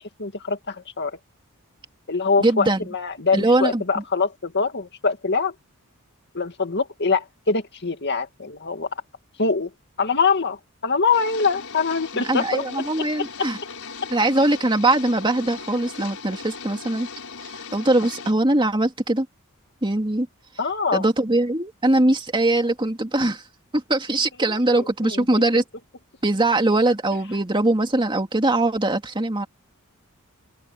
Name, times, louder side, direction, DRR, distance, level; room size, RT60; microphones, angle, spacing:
voice 1, 0.2-1.2 2.1-5.5 6.3-8.9 9.4-9.7 10.0-12.7 20.6-21.1 24.5-25.2, left 4 dB, 55° left, 2.2 m, -24 dB
voice 2, 2.4-2.8 3.3-3.8 12.1-13.6 14.1-17.1 17.4-19.3 19.8-20.3 20.9-23.4 23.7-25.6 26.2-29.5, right 2 dB, 20° right, 2.4 m, -21 dB
sound 1, 11.1-18.3, left 5 dB, 70° left, 6.4 m, -38 dB
open air
head